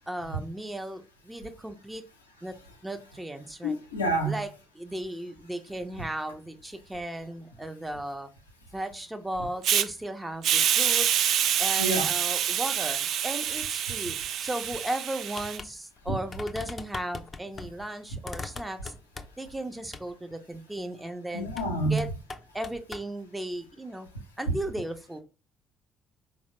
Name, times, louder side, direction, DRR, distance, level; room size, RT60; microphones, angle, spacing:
voice 1, 0.1-2.0 2.4-2.5 2.8-3.8 4.2-4.5 4.7-8.3 8.7-11.1 11.6-18.9 19.4-21.5 21.9-22.1 22.5-24.1 24.4-25.2, right 1 dB, 10° right, 0.6 m, -36 dB
voice 2, 3.6-4.4 11.8-12.1 21.3-22.1, right 1 dB, 85° left, 0.5 m, -28 dB
Hiss, 9.6-9.8 10.4-15.6, right 10 dB, 55° right, 0.3 m, -26 dB
sound 1, 15.3-15.7 16.0-16.1 16.3-17.7 18.2-19.5 19.9-20.1 21.5-21.7 22.0-23.1, left 3 dB, 35° left, 0.5 m, -40 dB
4.2 x 2.0 x 2.9 m
figure-of-eight pair, 45°, 0 cm